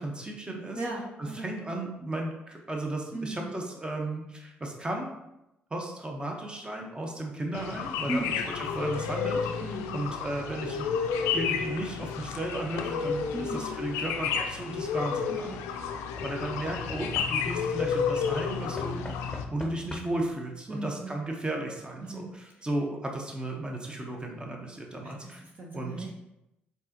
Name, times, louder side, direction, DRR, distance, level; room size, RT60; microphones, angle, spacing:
voice 1, 0.0-0.8 1.2-5.1 5.7-8.4 8.7-10.9 11.3-15.8 16.2-25.4 25.7-26.1, right 1 dB, 20° right, 1 dB, 1.1 m, -35 dB
voice 2, 0.8-1.5 3.1-3.6 8.1-8.4 9.6-10.0 13.3-13.7 15.3-15.6 20.7-21.1 22.0-22.3 25.0-26.1, right 1 dB, 45° right, -2 dB, 0.9 m, -37 dB
sound 1, 7.5-19.5, left 6 dB, 90° left, 0.4 m, -31 dB
Knock / Wood, 14.2-14.5 16.2-17.7 18.8-20.3 21.4-21.5 21.7-21.8, left 3 dB, 15° left, 0.9 m, -43 dB
4.6 x 4.0 x 2.9 m, 0.89 s
supercardioid pair, 65°, 4 cm